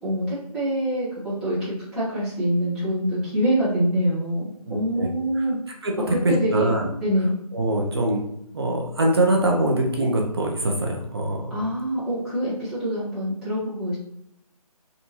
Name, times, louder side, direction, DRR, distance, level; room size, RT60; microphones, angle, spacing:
voice 1, 0.0-4.4 4.7-5.6 6.1-6.7 7.0-7.3 11.5-14.0, equal, 5° right, -13 dB, 0.9 m, -25 dB
voice 2, 4.7-5.1 5.8-6.9 7.5-8.3 8.5-11.4, right 1 dB, 40° right, 0 dB, 0.5 m, -23 dB
3.5 x 2.5 x 2.8 m, 0.75 s
figure-of-eight pair, 160°, 20 cm